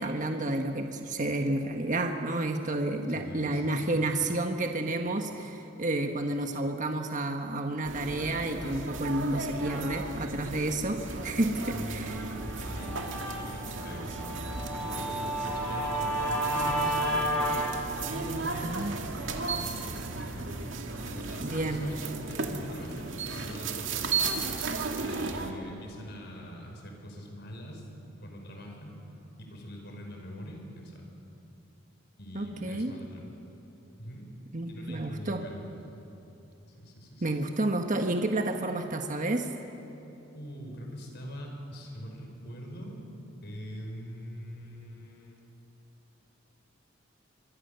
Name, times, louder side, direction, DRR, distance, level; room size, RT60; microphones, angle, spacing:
voice 1, 0.0-12.2 18.6-19.0 21.4-21.9 32.3-32.9 34.5-35.4 37.2-39.5, right 2 dB, 40° right, 4 dB, 1.4 m, -30 dB
voice 2, 3.1-4.0 11.7-13.2 13.4-14.4 14.8-17.2 18.1-18.9 19.4-19.8 20.1-20.5 21.0-24.4 25.0-27.8 28.2-28.9 29.4-31.0 32.2-33.3 34.0-34.3 34.6-35.6 36.8-37.4 40.3-43.0 43.4-45.4, equal, 60° left, 1 dB, 5.5 m, -43 dB
sound 1, 7.8-25.5, right 3 dB, 75° right, 2.2 m, -35 dB
Guitar, 12.1-17.6, right 1 dB, 10° left, 7.0 m, -32 dB
25.0 x 24.5 x 6.9 m, 2.9 s
head